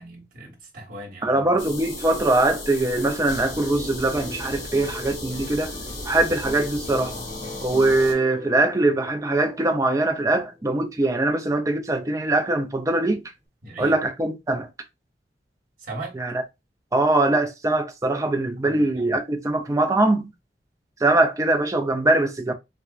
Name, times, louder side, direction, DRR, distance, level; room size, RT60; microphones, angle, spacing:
voice 1, 0.0-1.4 13.6-14.0 15.8-16.2 18.6-18.9, right 2 dB, 50° right, 1.3 m, -38 dB
voice 2, 1.2-5.7 6.0-7.2 7.6-13.2 13.8-14.7 16.2-16.4 16.9-20.3 21.0-22.5, right 2 dB, 20° right, 0.5 m, -22 dB
sound 1, 1.6-8.1, left 2 dB, 50° left, 1.6 m, -35 dB
sound 2, 3.5-12.0 12.3-13.0, left 3 dB, 30° left, 1.1 m, -42 dB
4.3 x 2.3 x 2.4 m
head